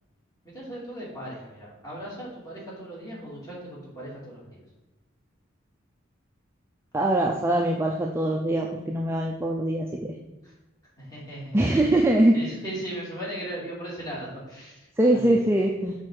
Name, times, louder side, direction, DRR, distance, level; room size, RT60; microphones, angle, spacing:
voice 1, 0.5-4.6 10.4-10.5 11.0-11.8 12.3-15.4, right 1 dB, 20° left, -6 dB, 2.4 m, -37 dB
voice 2, 6.9-10.2 11.5-12.3 15.0-15.9, right 1 dB, 10° right, 0 dB, 0.4 m, -22 dB
6.0 x 4.3 x 4.8 m, 1.1 s
head